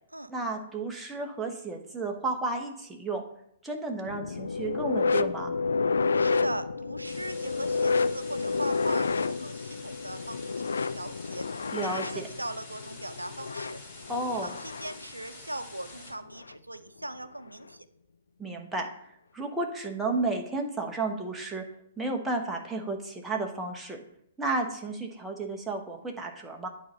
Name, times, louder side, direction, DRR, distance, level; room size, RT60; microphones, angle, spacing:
voice 1, 0.3-3.2 3.6-5.5 11.7-12.3 14.1-14.5 18.4-21.6 22.0-24.0 24.4-26.7, right 3 dB, 5° right, 0 dB, 1.2 m, -32 dB
sound 1, 4.0-15.0 16.3-16.5 17.5-17.6, left 4 dB, 65° left, 0.3 m, -30 dB
voice 2, 6.2-11.4 11.8-13.8 14.3-17.9, right 1 dB, 85° right, 11 dB, 0.6 m, -39 dB
sound 2, 7.0-16.1, left 2 dB, 30° left, 3.0 m, -47 dB
9.3 x 4.2 x 5.3 m, 0.73 s
figure-of-eight pair, 115°, 0 cm